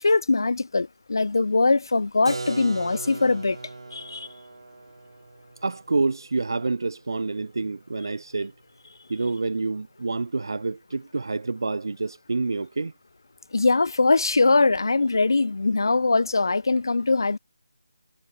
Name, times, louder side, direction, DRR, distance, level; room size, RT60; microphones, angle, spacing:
voice 1, 0.0-3.6 3.9-4.3 13.5-17.4, left 3 dB, 55° left, 0.8 m, -22 dB
Keyboard (musical), 2.3-7.9, right 3 dB, 75° right, 0.8 m, -39 dB
voice 2, 5.6-8.5 9.1-12.9, right 3 dB, 55° right, 0.4 m, -28 dB
figure-of-eight pair, 180°, 3 cm